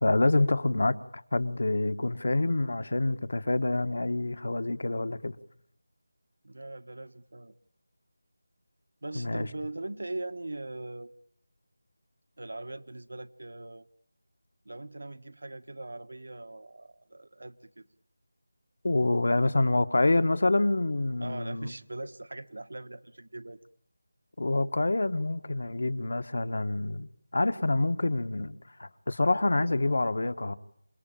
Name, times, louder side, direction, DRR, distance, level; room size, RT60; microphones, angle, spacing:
voice 1, 0.0-5.4 9.1-9.5 18.8-21.7 24.4-27.1 27.3-30.5, left 2 dB, 60° left, 1.3 m, -27 dB
voice 2, 6.4-7.5 9.0-11.1 12.4-13.9 14.6-17.9 21.2-23.6, right 2 dB, 75° right, 1.3 m, -40 dB
28.0 x 19.5 x 8.8 m
figure-of-eight pair, 175°, 0 cm